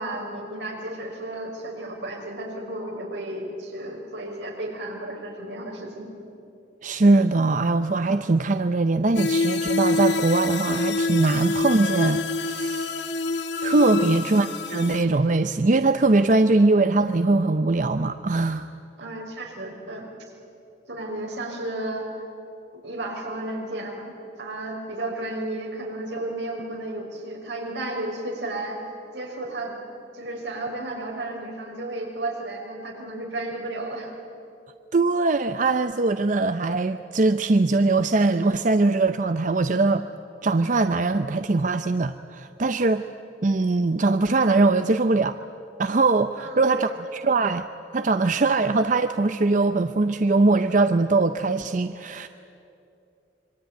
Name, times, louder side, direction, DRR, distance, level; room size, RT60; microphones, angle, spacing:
voice 1, 0.0-6.1 13.9-14.4 19.0-20.1 20.9-22.1 22.8-24.1 24.4-28.8 29.1-29.7 30.1-34.1 46.4-46.9, right 1 dB, 85° right, 1 dB, 5.7 m, -33 dB
voice 2, 6.8-12.9 13.6-18.7 34.9-40.1 40.4-43.0 43.4-45.4 45.8-47.7 47.9-52.3, right 3 dB, 45° right, 10 dB, 0.6 m, -21 dB
sound 1, 9.2-15.0, left 3 dB, 85° left, 1.8 m, -26 dB
26.0 x 23.5 x 9.3 m, 2.7 s
head